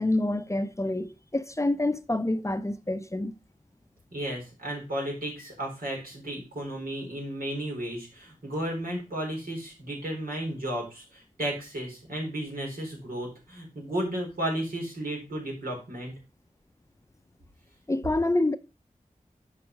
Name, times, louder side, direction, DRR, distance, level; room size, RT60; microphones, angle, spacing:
voice 1, 0.0-3.3 17.9-18.5, left 2 dB, 20° left, 0.6 m, -27 dB
voice 2, 4.1-16.1, right 1 dB, 90° right, 4.0 m, -33 dB
7.8 x 4.9 x 5.2 m
wide cardioid pair, 50°, 14 cm